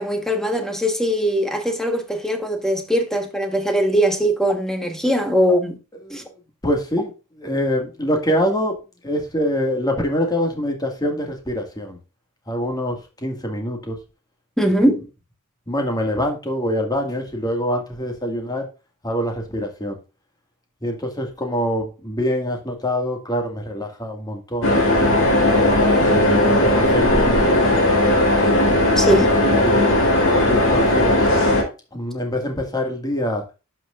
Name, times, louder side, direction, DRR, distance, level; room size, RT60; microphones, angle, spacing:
voice 1, 0.0-5.8 6.1-6.2 14.6-15.0 29.0-29.3, equal, ahead, 1.3 m, -20 dB
voice 2, 6.0-8.8 9.0-12.0 12.5-14.0 15.7-18.7 19.0-20.0 20.8-24.7 25.8-27.8 28.7-29.9 30.4-31.2 31.9-33.4, equal, 20° left, 2.0 m, -25 dB
sound 1, 24.6-31.6, left 1 dB, 65° left, 3.4 m, -17 dB
11.0 x 6.2 x 2.5 m
head